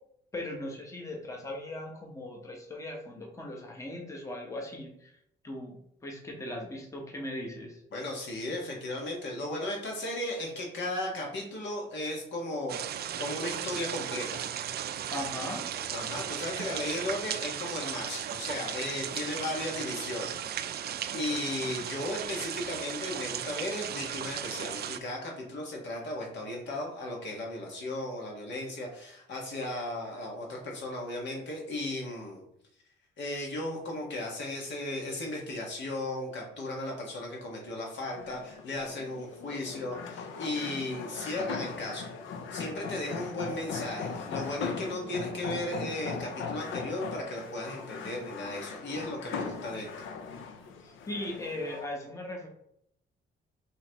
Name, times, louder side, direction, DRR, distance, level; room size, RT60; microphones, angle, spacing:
voice 1, 0.3-5.2 5.4-5.8 6.0-7.8 15.1-15.7 50.8-52.5, left 1 dB, 15° left, 0 dB, 1.0 m, -38 dB
voice 2, 7.9-14.4 15.9-20.4 21.1-32.4 33.2-42.1 42.5-49.9, left 1 dB, 65° left, -1 dB, 1.5 m, -36 dB
sound 1, 12.7-25.0, right 10 dB, 55° right, 0.4 m, -36 dB
sound 2, 38.1-51.9, left 5 dB, 85° left, 0.6 m, -39 dB
5.7 x 3.1 x 3.0 m, 0.75 s
cardioid pair, 90°, 20 cm